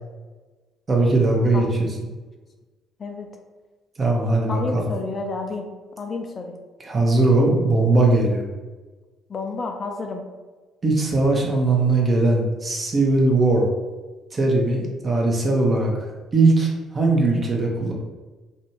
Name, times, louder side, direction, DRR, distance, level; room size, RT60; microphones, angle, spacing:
voice 1, 0.9-1.9 4.0-4.9 6.8-8.5 10.8-13.7 14.3-17.9, right 2 dB, 35° right, -1 dB, 0.7 m, -20 dB
voice 2, 4.5-5.7 6.0-6.6 9.3-10.2, left 3 dB, 40° left, 4 dB, 0.4 m, -30 dB
2.6 x 2.2 x 2.9 m, 1.3 s
hypercardioid pair, 50°, 0 cm